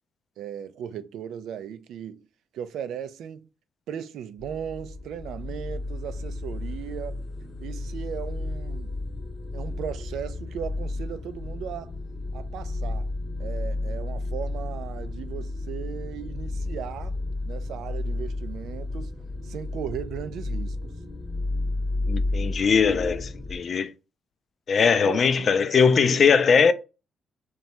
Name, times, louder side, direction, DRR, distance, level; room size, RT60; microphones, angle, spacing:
voice 1, 0.4-2.3 2.5-3.5 3.9-7.2 7.6-8.9 9.5-11.9 12.3-13.1 13.4-17.2 17.4-19.1 19.4-20.9 24.9-25.5, right 9 dB, 80° right, 0.3 m, -37 dB
sound 1, 4.4-23.6, left 2 dB, 30° left, 0.8 m, -32 dB
voice 2, 22.1-23.9 24.7-26.7, left 6 dB, 50° left, 0.3 m, -20 dB
2.7 x 2.2 x 3.1 m
cardioid pair, 90°, 0 cm